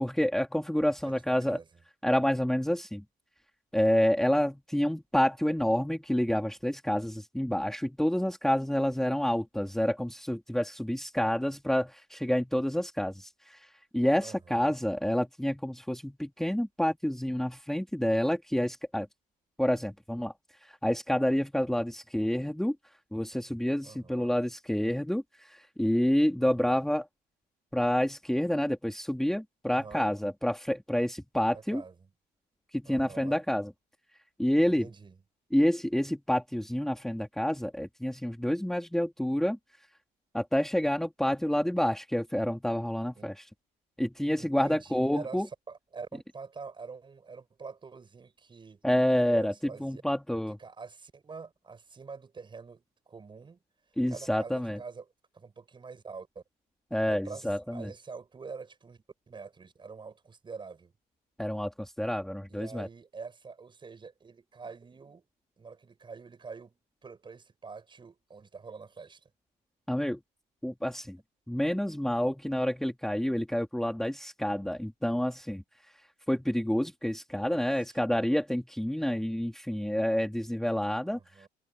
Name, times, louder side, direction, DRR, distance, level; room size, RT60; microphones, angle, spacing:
voice 1, 0.0-1.6 2.0-3.0 3.7-19.1 19.6-20.3 20.6-22.8 23.1-27.1 27.7-31.8 32.7-33.7 34.4-34.9 35.5-39.6 40.3-43.5 44.0-45.5 48.8-50.6 54.0-54.8 56.9-57.9 61.4-62.9 69.9-70.2 70.6-71.2 71.5-75.9 76.3-81.5, equal, ahead, 2.1 m, -28 dB
voice 2, 0.9-1.7 14.2-14.8 23.8-24.3 26.4-26.8 29.7-30.1 31.5-32.1 32.8-33.4 34.7-35.2 43.2-43.3 44.4-48.8 49.3-50.0 50.6-53.6 54.1-55.1 55.3-56.4 57.1-60.9 62.5-65.2 65.6-69.3 77.4-77.9 81.1-81.5, right 5 dB, 30° right, 6.2 m, -46 dB
cardioid pair, 110°, 17 cm